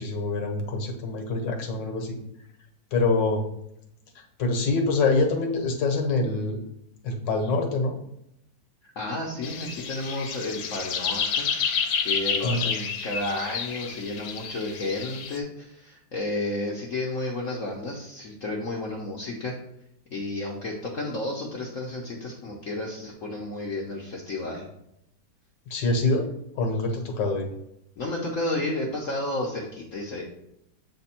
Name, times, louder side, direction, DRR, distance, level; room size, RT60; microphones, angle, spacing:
voice 1, 0.0-2.2 2.9-3.4 4.4-6.6 7.0-8.0 12.4-12.6 25.7-26.3 26.5-27.5, left 3 dB, 70° left, 4 dB, 1.6 m, -25 dB
voice 2, 8.8-11.5 12.0-19.6 20.1-24.7 28.0-30.2, left 2 dB, 55° left, -2 dB, 1.0 m, -32 dB
sound 1, 9.4-15.4, left 6 dB, 85° left, 1.5 m, -30 dB
7.6 x 3.4 x 4.3 m, 0.80 s
omnidirectional pair, 2.1 m